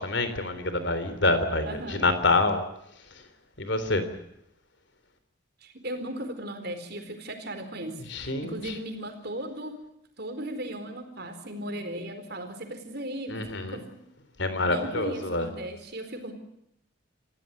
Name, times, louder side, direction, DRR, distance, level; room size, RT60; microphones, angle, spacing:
voice 1, 0.0-2.6 3.6-4.1 8.1-8.8 13.3-13.8 14.4-15.5, left 2 dB, 60° left, 10 dB, 3.6 m, -26 dB
voice 2, 1.6-2.1 5.6-7.9 8.2-9.8 10.2-13.8 14.6-16.3, right 1 dB, 50° right, 7 dB, 4.3 m, -37 dB
26.5 x 16.0 x 8.6 m, 0.79 s
head